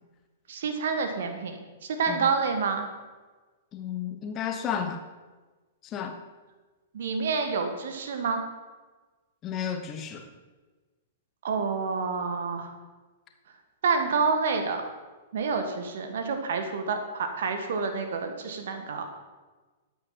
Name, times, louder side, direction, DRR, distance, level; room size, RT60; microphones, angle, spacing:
voice 1, 0.5-2.9 6.9-8.4 11.4-12.7 13.8-14.8 15.3-19.0, right 5 dB, 55° right, 6 dB, 1.6 m, -28 dB
voice 2, 3.7-5.0 5.8-6.2 9.4-10.3, left 8 dB, 25° left, 7 dB, 1.0 m, -32 dB
13.0 x 8.7 x 5.9 m, 1.3 s
figure-of-eight pair, 105°, 0 cm